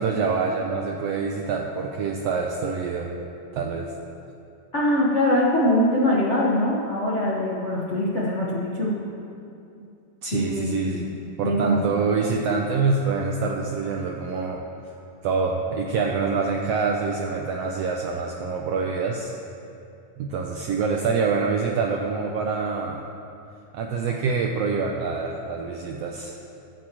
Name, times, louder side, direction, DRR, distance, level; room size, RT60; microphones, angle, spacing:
voice 1, 0.0-3.2 3.5-3.9 10.2-11.0 11.4-14.6 15.2-19.4 20.2-23.0 23.7-26.4, right 4 dB, 80° right, 1 dB, 1.4 m, -26 dB
voice 2, 4.7-8.9 10.3-11.0 11.4-11.9, left 1 dB, 65° left, -6 dB, 0.7 m, -23 dB
21.5 x 8.2 x 3.0 m, 2.6 s
omnidirectional pair, 3.6 m